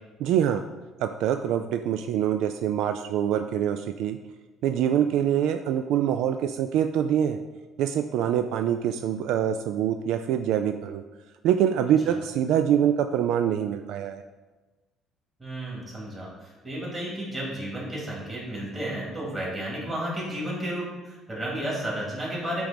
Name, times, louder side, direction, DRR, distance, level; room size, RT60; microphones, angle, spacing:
voice 1, 0.2-0.6 1.0-4.2 4.6-7.4 7.8-11.0 11.4-14.2, right 9 dB, 70° right, 8 dB, 0.3 m, -25 dB
voice 2, 15.4-22.6, right 1 dB, 15° right, -5 dB, 2.4 m, -32 dB
8.8 x 3.2 x 5.1 m, 1.2 s
cardioid pair, 145°, 0 cm